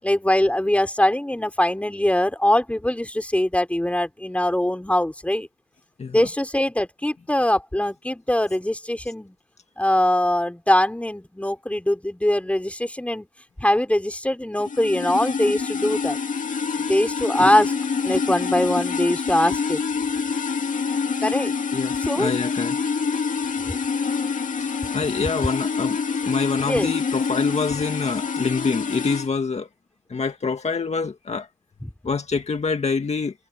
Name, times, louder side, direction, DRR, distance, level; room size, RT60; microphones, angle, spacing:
voice 1, 0.0-5.5 6.1-9.4 9.8-13.3 13.6-16.2 16.8-17.7 18.0-19.8 21.2-21.5 22.0-22.3 23.6-23.8 26.6-26.9 31.8-31.9, left 1 dB, 10° left, 4.8 m, -22 dB
sound 1, 14.6-29.3, left 5 dB, 65° left, 2.4 m, -26 dB
voice 2, 21.7-22.9 24.6-26.0 26.3-29.7 30.1-31.5 32.0-33.3, left 4 dB, 50° left, 1.9 m, -26 dB
cardioid pair, 65°, 14 cm